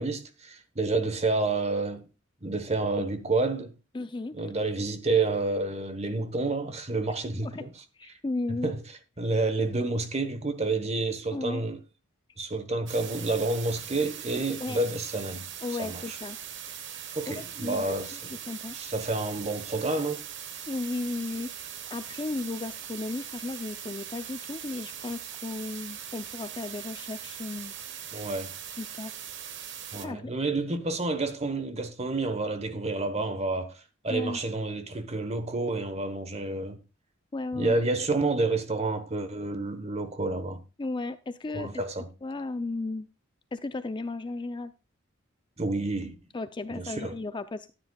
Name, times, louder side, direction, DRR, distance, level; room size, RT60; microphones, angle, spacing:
voice 1, 0.0-2.1 2.4-3.7 4.3-8.2 8.5-8.8 9.2-11.8 12.4-15.5 15.8-16.2 17.1-18.4 18.7-20.2 20.5-20.6 28.1-28.5 29.9-36.8 37.5-40.6 41.5-42.1 45.6-46.1 46.7-47.1, right 3 dB, 35° right, 1.1 m, -29 dB
voice 2, 3.9-4.3 7.4-7.6 8.0-8.7 11.3-11.6 14.6-14.8 15.6-16.4 17.3-18.0 18.5-18.7 20.7-21.5 21.9-27.7 28.8-29.1 30.0-30.3 34.1-34.4 37.3-37.8 40.8-41.7 42.2-43.1 43.5-44.7 46.3-47.7, left 2 dB, 25° left, 0.4 m, -34 dB
sound 1, 12.9-30.1, right 9 dB, 65° right, 1.2 m, -41 dB
13.5 x 9.8 x 2.3 m
head